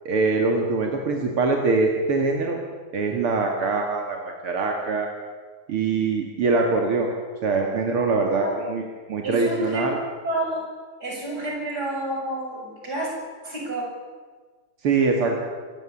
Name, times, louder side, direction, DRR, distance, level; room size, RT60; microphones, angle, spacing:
voice 1, 0.0-2.6 2.9-5.1 5.7-7.1 7.4-8.8 9.1-10.0 14.8-15.4, right 3 dB, 85° right, 2 dB, 3.1 m, -23 dB
voice 2, 9.2-9.9 10.2-10.6 11.0-13.1 13.4-13.9, right 1 dB, 45° right, -2 dB, 7.6 m, -29 dB
26.5 x 15.5 x 8.5 m, 1.5 s
omnidirectional pair, 2.4 m